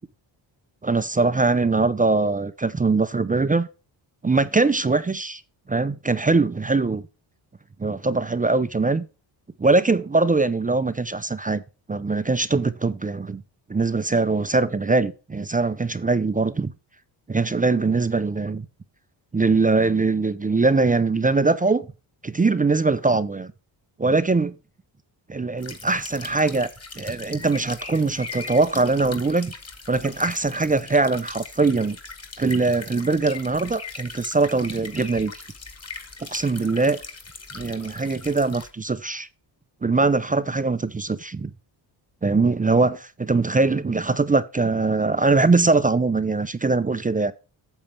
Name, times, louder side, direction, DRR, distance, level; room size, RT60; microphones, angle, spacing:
voice 1, 0.8-3.7 4.2-5.4 5.7-7.0 7.8-9.1 9.6-11.6 11.9-13.4 13.7-16.7 17.3-18.7 19.3-21.9 22.2-23.5 24.0-24.5 25.3-26.7 27.0-29.5 29.9-32.0 32.4-35.3 36.3-37.0 37.5-39.3 39.8-41.5 42.2-47.3, right 3 dB, 15° right, 0.5 m, -22 dB
sound 1, 25.6-38.7, left 4 dB, 30° left, 2.0 m, -40 dB
8.8 x 7.2 x 3.4 m
cardioid pair, 90°, 49 cm